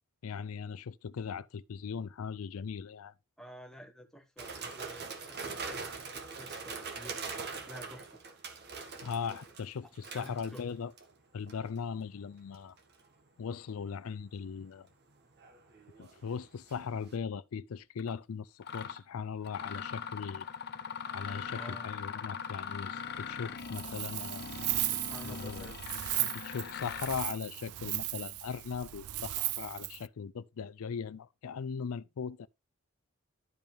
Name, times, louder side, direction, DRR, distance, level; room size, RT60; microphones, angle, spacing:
voice 1, 0.2-3.1 9.0-10.9 11.3-12.8 13.4-14.9 16.0-20.5 21.1-24.5 25.2-25.7 26.2-32.5, left 6 dB, 70° left, 0.4 m, -39 dB
voice 2, 3.4-8.2 9.8-10.6 21.6-21.9 24.9-25.8, equal, ahead, 1.3 m, -51 dB
sound 1, 4.4-11.1 11.5-11.8 12.5-13.0 15.2-16.8 17.1-17.2, right 4 dB, 50° right, 1.8 m, -43 dB
Mechanisms, 18.0-18.1 18.6-19.0 19.4-27.3, left 6 dB, 50° left, 0.9 m, -41 dB
Wind, 23.6-30.1, right 17 dB, 85° right, 0.4 m, -36 dB
12.0 x 5.4 x 3.4 m
head